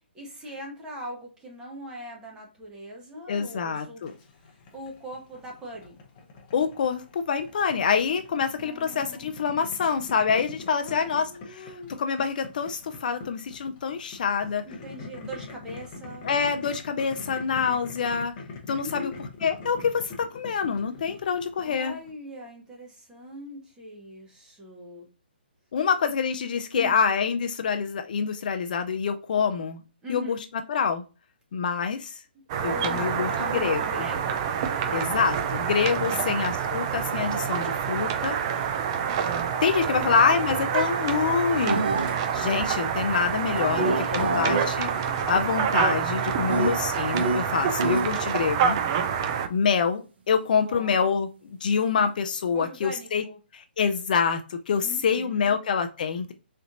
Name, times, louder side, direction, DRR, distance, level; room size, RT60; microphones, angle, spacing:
voice 1, 0.1-4.0 4.3-6.0 8.6-9.3 10.8-12.0 14.7-16.3 18.8-19.3 21.6-25.1 26.7-27.0 30.0-30.4 32.7-34.5 39.9-40.3 43.6-44.4 50.6-51.0 52.5-53.4 54.8-55.5, equal, 10° right, -2 dB, 1.0 m, -41 dB
voice 2, 3.3-4.1 6.5-11.7 12.0-14.6 16.2-18.3 18.7-19.1 19.4-21.9 25.7-29.8 30.1-30.4 30.7-31.0 31.5-32.2 32.6-34.1 34.9-38.6 39.6-41.8 42.3-48.8 49.5-51.3 51.6-53.2 53.5-56.3, left 6 dB, 50° left, 8 dB, 0.4 m, -26 dB
Boiling, 4.0-22.1, left 4 dB, 30° left, 0.8 m, -43 dB
sound 1, 32.5-49.5, right 7 dB, 30° right, 0.4 m, -27 dB
sound 2, 41.7-42.2 43.6-48.2, right 3 dB, 70° right, 1.1 m, -29 dB
3.9 x 3.2 x 2.5 m, 0.33 s
hypercardioid pair, 155°, 6 cm